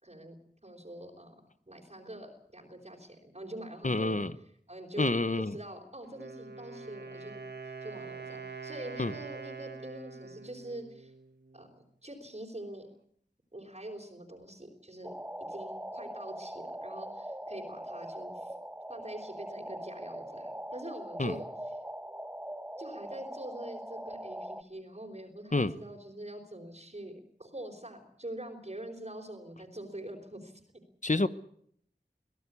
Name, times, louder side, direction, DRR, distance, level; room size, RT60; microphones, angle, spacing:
voice 1, 0.0-0.3 0.6-1.3 1.7-4.2 4.7-5.1 5.5-11.1 11.5-12.9 13.5-15.1 15.5-18.5 18.9-21.5 22.8-27.1 27.4-30.6, right 1 dB, 40° right, -2 dB, 4.4 m, -44 dB
voice 2, 3.8-4.3 5.0-5.6 9.0-9.1 21.2-21.3 25.5-25.7 31.0-31.3, left 2 dB, 45° left, 13 dB, 1.0 m, -28 dB
Wind instrument woodwind instrument, 6.0-11.8, right 4 dB, 75° right, 1.7 m, -45 dB
sound 1, 15.0-24.6, right 1 dB, 10° right, 1.0 m, -42 dB
24.0 x 16.5 x 8.4 m, 0.66 s
wide cardioid pair, 45°, 18 cm